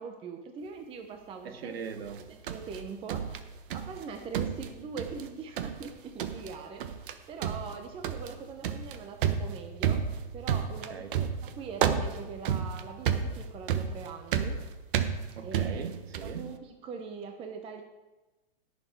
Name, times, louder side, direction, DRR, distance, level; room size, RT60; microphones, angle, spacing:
voice 1, 0.0-1.8 2.3-3.4 3.7-10.1 10.3-14.6 15.4-15.9 16.2-17.8, right 5 dB, 20° right, 4 dB, 0.8 m, -42 dB
voice 2, 1.4-2.3 10.9-11.1 15.4-16.5, right 6 dB, 80° right, 8 dB, 1.6 m, -40 dB
sound 1, 2.1-4.0 4.3-5.3 5.6-5.9 6.2-6.5 6.8-7.1 7.4-16.4, right 8 dB, 60° right, 1.2 m, -31 dB
17.0 x 6.9 x 4.6 m, 1.1 s
hypercardioid pair, 140°, 30 cm